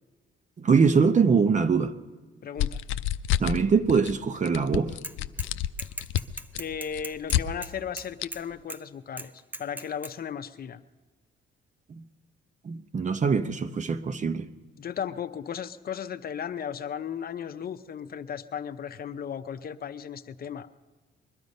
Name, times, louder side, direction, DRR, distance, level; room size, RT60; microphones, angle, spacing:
voice 1, 0.6-1.9 3.4-4.9 12.6-14.5, right 5 dB, 40° right, 0.8 m, -23 dB
voice 2, 2.4-2.8 6.6-10.8 14.8-20.7, left 8 dB, 50° left, 0.7 m, -35 dB
sound 1, 2.6-3.6 3.9-4.2 4.5-7.4 8.2-8.3, left 12 dB, 85° left, 0.5 m, -28 dB
Bicycle / Mechanisms, 5.0-5.5 5.8-8.4 8.7-8.8 9.2-10.1, right 1 dB, 10° right, 0.5 m, -38 dB
21.5 x 12.5 x 5.4 m
cardioid pair, 90°, 20 cm